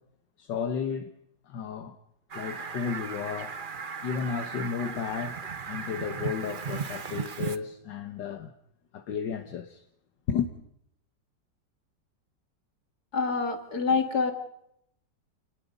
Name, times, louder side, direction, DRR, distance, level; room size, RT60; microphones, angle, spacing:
voice 1, 0.4-1.1 1.5-2.0 2.3-3.6 4.0-8.5 8.9-9.8 10.3-10.5, left 7 dB, 75° left, 1.8 m, -33 dB
Fowl, 2.3-7.6, right 6 dB, 35° right, 0.9 m, -36 dB
voice 2, 13.1-14.3, left 4 dB, 55° left, 2.8 m, -26 dB
28.5 x 19.5 x 5.4 m
omnidirectional pair, 2.0 m